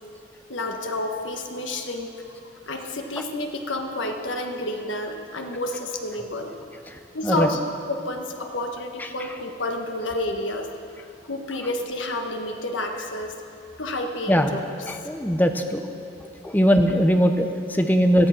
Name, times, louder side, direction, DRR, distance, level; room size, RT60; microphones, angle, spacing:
voice 1, 0.5-2.4 2.7-6.5 7.1-10.7 11.0-13.3 13.8-14.6, left 2 dB, 80° left, 4 dB, 1.5 m, -30 dB
voice 2, 6.9-7.5 9.0-9.1 14.3-14.5 14.9-15.8 16.4-18.3, equal, 10° left, 6 dB, 0.8 m, -20 dB
18.0 x 12.5 x 5.9 m, 2.5 s
head